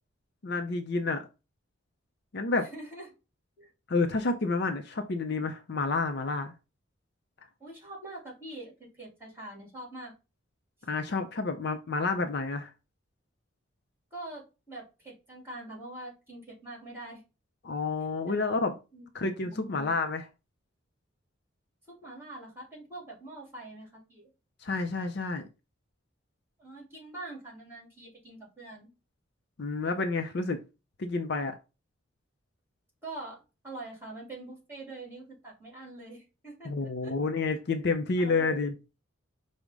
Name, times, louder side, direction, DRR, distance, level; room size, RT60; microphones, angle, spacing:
voice 1, 0.4-1.3 2.3-2.7 3.9-6.5 10.9-12.7 17.6-18.8 19.1-20.2 24.6-25.5 29.6-30.6 31.0-31.5 36.6-38.7, left 3 dB, 55° left, 0.5 m, -29 dB
voice 2, 2.6-3.1 3.6-3.7 7.6-10.1 14.1-17.2 18.3-18.4 18.9-19.1 19.4-20.0 21.9-24.3 26.6-28.9 33.0-37.1 38.2-38.6, right 2 dB, 10° right, 2.2 m, -44 dB
5.1 x 2.1 x 4.6 m
head